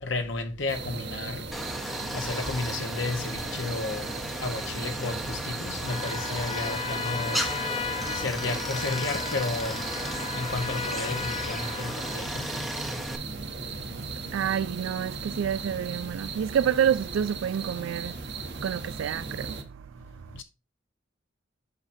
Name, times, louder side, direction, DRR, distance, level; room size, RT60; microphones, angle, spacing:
voice 1, 0.0-1.4 2.1-4.1 4.4-7.4 8.1-9.8 10.3-12.6, left 3 dB, 70° left, 1.1 m, -32 dB
sound 1, 0.7-19.6, right 4 dB, 60° right, 1.2 m, -37 dB
Stream, 1.5-13.2, equal, ahead, 0.7 m, -35 dB
Trumpet, 5.8-12.3, left 5 dB, 30° left, 0.3 m, -36 dB
voice 2, 14.3-18.2 18.5-20.4, right 8 dB, 80° right, 0.3 m, -28 dB
8.0 x 5.7 x 2.7 m
head